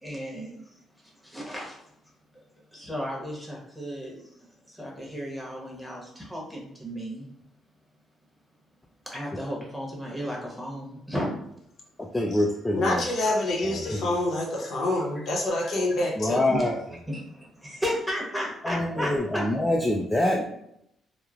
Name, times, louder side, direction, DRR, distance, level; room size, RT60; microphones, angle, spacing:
voice 1, 0.0-0.8 1.2-1.8 2.3-2.4 2.7-4.3 4.7-7.3 9.1-11.3 12.3-12.4 13.8-14.0 15.5-15.7 16.3-16.7 17.1-19.4, equal, ahead, -3 dB, 0.9 m, -34 dB
voice 2, 12.0-13.0 13.6-14.1 16.2-16.8 18.6-20.4, left 1 dB, 15° left, -1 dB, 0.3 m, -25 dB
voice 3, 12.7-16.4, left 2 dB, 65° left, -1 dB, 0.7 m, -27 dB
3.0 x 2.1 x 2.4 m, 0.76 s
cardioid pair, 90°, 0 cm